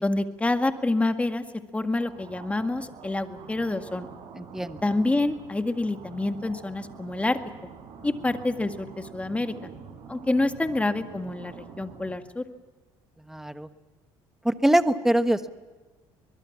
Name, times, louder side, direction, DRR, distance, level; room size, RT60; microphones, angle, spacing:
voice 1, 0.0-1.4 1.7-4.1 4.8-7.4 8.0-9.7 10.1-12.4, left 2 dB, 15° left, 8 dB, 1.9 m, -27 dB
sound 1, 1.9-12.2, right 6 dB, 65° right, 4.5 m, -46 dB
voice 2, 4.3-4.8 13.3-13.7 14.4-15.5, right 1 dB, 5° right, 11 dB, 1.2 m, -23 dB
23.0 x 21.5 x 7.3 m, 1.3 s
supercardioid pair, 90°, 10 cm